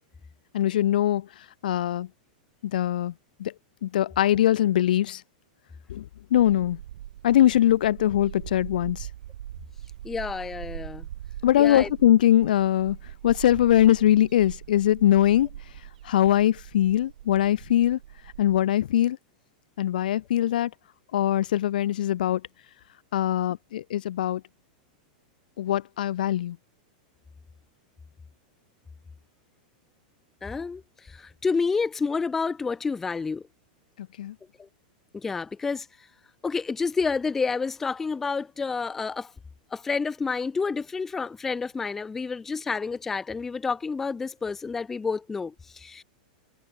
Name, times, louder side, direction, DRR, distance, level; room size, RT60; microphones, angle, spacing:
voice 1, 0.5-1.3 1.6-2.1 2.6-3.1 3.4-3.5 3.8-5.2 5.9-6.1 6.3-6.8 7.2-9.1 11.4-13.0 13.2-15.5 16.0-18.0 18.4-19.2 19.8-20.7 21.1-22.4 23.1-24.4 25.6-26.6 34.0-34.4, left 12 dB, 80° left, 0.4 m, -22 dB
sound 1, 6.3-18.6, right 12 dB, 70° right, 2.1 m, -42 dB
voice 2, 10.0-11.1 11.6-11.9 30.4-33.4 34.6-34.7 35.1-35.9 36.4-39.3 39.7-46.0, left 4 dB, 5° left, 0.3 m, -29 dB
supercardioid pair, 175°, 5 cm